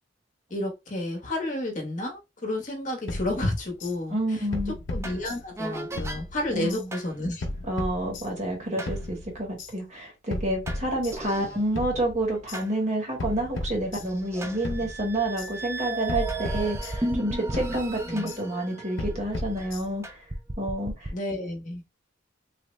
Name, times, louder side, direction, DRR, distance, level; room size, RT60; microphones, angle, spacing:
voice 1, 0.5-7.4 18.1-18.3 21.1-21.8, left 1 dB, 40° left, 1.0 m, -31 dB
sound 1, 3.1-3.9 4.5-5.7 6.0-6.8 7.4-8.5 8.9-9.7 10.3-11.5 11.8-12.6 13.2-14.4 14.6-15.5 16.1-17.3 17.5-18.4 19.0-20.1, left 1 dB, 85° left, 0.7 m, -35 dB
voice 2, 4.1-4.7 6.5-6.9 7.7-20.0 20.6-21.1, right 1 dB, 40° right, 1.1 m, -29 dB
sound 2, 5.0-5.2 5.6-6.2 6.9-7.1 8.8-9.0 10.7-12.7 13.3-13.4 14.0-19.7 20.0-21.1, right 2 dB, 15° right, 0.3 m, -35 dB
3.3 x 2.1 x 3.1 m
head